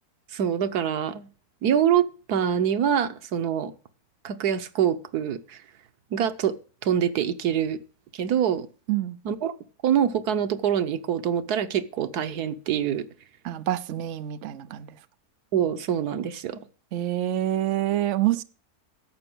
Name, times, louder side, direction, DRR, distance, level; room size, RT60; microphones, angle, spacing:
voice 1, 0.3-1.3 1.6-3.7 4.2-5.6 6.1-6.5 6.8-7.8 8.1-8.7 9.2-9.5 9.8-13.0 15.5-16.6, right 9 dB, 90° right, 1.5 m, -25 dB
voice 2, 13.4-14.9 16.9-18.4, right 13 dB, 60° right, 0.9 m, -26 dB
11.0 x 7.8 x 6.1 m
omnidirectional pair, 1.6 m